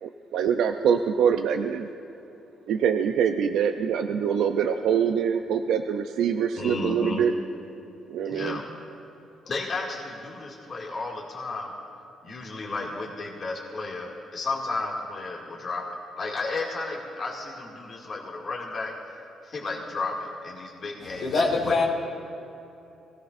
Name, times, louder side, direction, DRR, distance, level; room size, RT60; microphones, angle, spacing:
voice 1, 0.0-1.9 2.7-7.3 8.1-8.6, right 7 dB, 80° right, 5 dB, 0.6 m, -24 dB
voice 2, 6.6-7.2 8.2-8.6 9.4-11.7 12.2-15.8 16.2-18.9 19.4-21.8, left 3 dB, 45° left, -3 dB, 2.3 m, -33 dB
voice 3, 21.2-21.8, left 3 dB, 75° left, -5 dB, 2.3 m, -23 dB
23.0 x 17.0 x 2.6 m, 2.8 s
cardioid pair, 90°, 0 cm